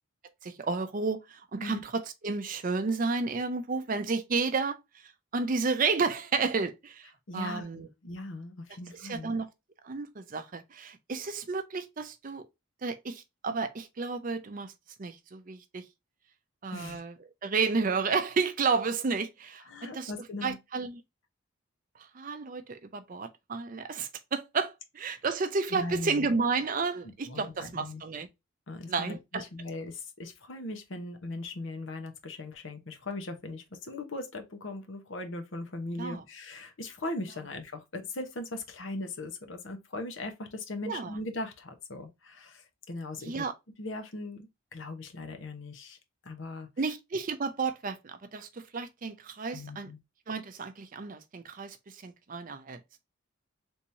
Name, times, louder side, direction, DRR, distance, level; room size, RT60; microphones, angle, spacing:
voice 1, 0.4-4.8 5.3-7.1 7.3-7.9 9.1-9.5 9.8-12.4 12.8-14.7 15.0-15.8 16.6-17.1 17.4-19.6 19.9-20.1 20.4-21.0 22.2-28.3 28.9-29.4 36.0-36.2 40.9-41.1 43.2-43.5 46.8-49.9 50.3-51.8 52.0-52.8, right 4 dB, 40° right, 0.5 m, -31 dB
voice 2, 7.3-9.3 16.7-17.0 19.6-20.6 25.7-26.3 27.3-28.0 28.7-43.5 43.8-46.0 46.2-46.7 49.5-50.0, left 2 dB, 60° left, 0.8 m, -39 dB
3.5 x 2.9 x 2.6 m
head